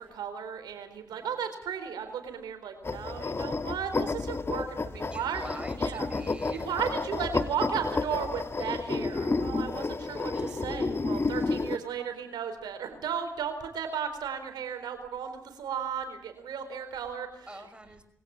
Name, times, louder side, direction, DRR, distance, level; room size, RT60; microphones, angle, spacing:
voice 1, 0.0-6.1 6.5-17.5, right 7 dB, 80° right, 7 dB, 4.2 m, -35 dB
voice 2, 1.1-1.4 4.9-6.7 8.6-8.7 10.2-10.6 17.5-18.0, right 1 dB, 15° right, 8 dB, 5.5 m, -47 dB
sound 1, 2.8-11.8, left 3 dB, 35° left, 1.4 m, -31 dB
23.0 x 17.0 x 8.5 m, 0.72 s
supercardioid pair, 45°, 7 cm